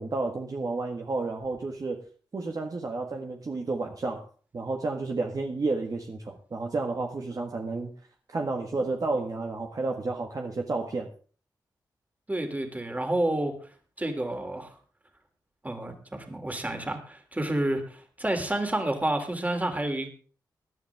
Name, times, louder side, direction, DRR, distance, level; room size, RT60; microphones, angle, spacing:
voice 1, 0.0-2.0 2.3-4.3 4.5-7.9 8.3-11.1, right 3 dB, 50° right, 2 dB, 1.7 m, -31 dB
voice 2, 12.3-13.5 14.0-14.8 15.6-20.1, right 1 dB, 20° right, 5 dB, 3.1 m, -29 dB
18.0 x 11.0 x 3.6 m, 0.39 s
cardioid pair, 60°, 8 cm